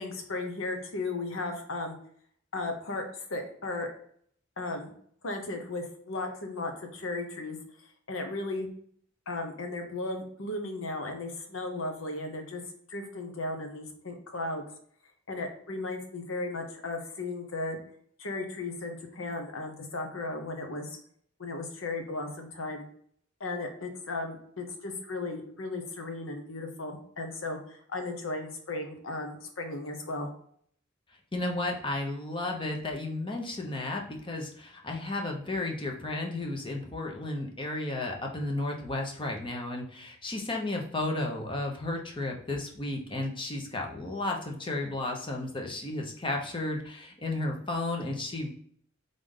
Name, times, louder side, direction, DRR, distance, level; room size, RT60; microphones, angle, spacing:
voice 1, 0.0-2.0 2.5-3.0 3.3-3.9 4.6-4.9 5.2-7.6 8.1-8.7 9.3-12.6 12.9-14.6 15.3-17.8 18.2-20.9 21.4-22.8 23.4-30.3, left 2 dB, 75° left, 4 dB, 1.0 m, -35 dB
voice 2, 31.3-48.5, left 2 dB, 25° left, 1 dB, 0.9 m, -33 dB
3.8 x 3.4 x 3.7 m, 0.62 s
head